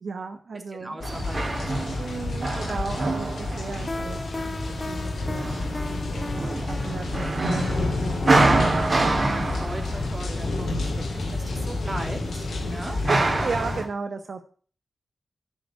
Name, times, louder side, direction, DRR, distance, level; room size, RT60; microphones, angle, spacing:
voice 1, 0.0-0.9 2.0-9.5 13.1-14.4, right 4 dB, 65° right, 7 dB, 1.2 m, -35 dB
voice 2, 0.7-2.3 7.9-8.2 9.3-13.0, right 1 dB, 20° right, 3 dB, 3.0 m, -39 dB
sound 1, 1.0-13.8, left 2 dB, 85° left, 3.0 m, -30 dB
sound 2, 1.0-13.9, right 2 dB, 35° right, 2.8 m, -27 dB
sound 3, 3.9-10.6, left 2 dB, 25° left, 0.9 m, -38 dB
11.5 x 7.0 x 7.8 m, 0.42 s
wide cardioid pair, 105°, 0 cm